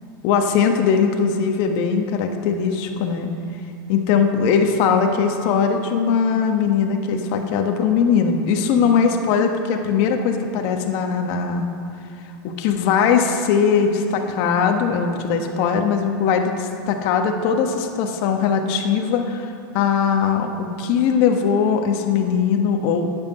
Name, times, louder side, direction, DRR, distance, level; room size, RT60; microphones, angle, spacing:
voice 1, 0.2-3.3 3.9-11.7 12.4-23.1, left 6 dB, 55° left, 4 dB, 1.3 m, -20 dB
9.1 x 7.5 x 8.3 m, 2.6 s
supercardioid pair, 120°, 12 cm